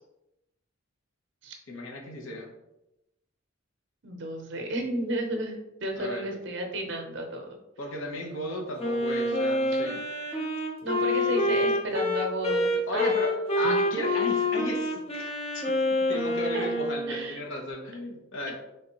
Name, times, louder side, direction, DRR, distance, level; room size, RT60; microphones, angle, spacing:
voice 1, 1.7-2.5 5.9-6.3 7.8-10.1 12.6-15.6 16.1-18.5, left 1 dB, 85° left, 1 dB, 0.9 m, -35 dB
voice 2, 4.0-7.6 9.7-9.8 10.8-12.7 12.9-13.1 13.6-13.8 16.5-16.7 17.1-17.4, right 1 dB, 65° right, 3 dB, 0.7 m, -32 dB
Wind instrument woodwind instrument, 8.8-17.3, left 1 dB, 30° left, 0.7 m, -27 dB
3.8 x 3.3 x 2.9 m, 0.91 s
head